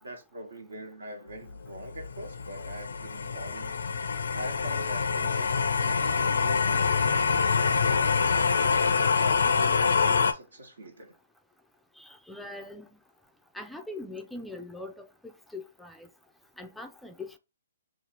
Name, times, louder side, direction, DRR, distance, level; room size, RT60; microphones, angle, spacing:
voice 1, 0.0-3.7 4.0-8.1 9.0-11.1, right 1 dB, 85° right, 1.2 m, -43 dB
sound 1, 1.5-10.3, left 5 dB, 75° left, 0.4 m, -25 dB
voice 2, 12.0-12.9 13.5-16.1 16.6-17.4, left 2 dB, ahead, 0.3 m, -42 dB
2.8 x 2.4 x 4.2 m
hypercardioid pair, 140°, 0 cm